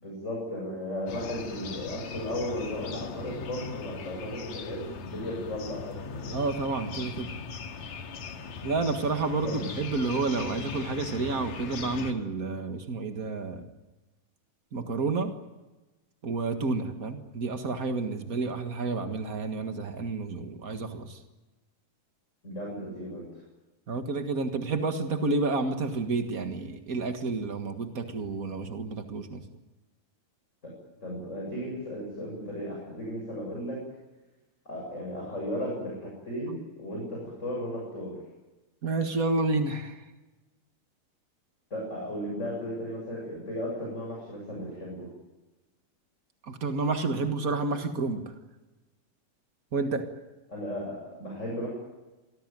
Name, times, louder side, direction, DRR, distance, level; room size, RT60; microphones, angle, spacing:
voice 1, 0.0-6.4 9.4-9.7 22.4-23.4 30.6-30.7 31.0-33.8 34.6-38.1 41.7-45.1 50.5-51.7, equal, 15° left, -3 dB, 7.9 m, -35 dB
sound 1, 1.1-12.1, left 5 dB, 55° left, 2.9 m, -39 dB
voice 2, 6.3-7.3 8.6-13.7 14.7-15.3 16.2-21.2 23.9-29.4 38.8-40.0 46.5-48.3 49.7-50.0, right 3 dB, 75° right, 6 dB, 0.7 m, -30 dB
26.5 x 19.0 x 9.3 m, 1.1 s
omnidirectional pair, 4.4 m